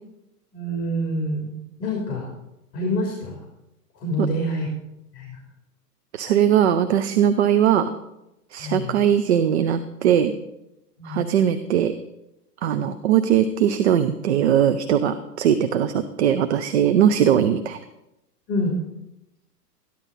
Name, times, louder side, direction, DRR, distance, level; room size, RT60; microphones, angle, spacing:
voice 1, 0.5-2.3 2.7-3.4 3.9-4.7 5.1-5.4 8.6-9.0 11.0-11.3 12.7-12.9 18.5-18.8, equal, 35° left, -2 dB, 3.2 m, -27 dB
voice 2, 6.1-7.9 8.5-10.3 11.0-11.9 12.6-17.8, right 9 dB, 45° right, 10 dB, 0.6 m, -20 dB
14.0 x 11.0 x 4.1 m, 0.90 s
hypercardioid pair, 150°, 48 cm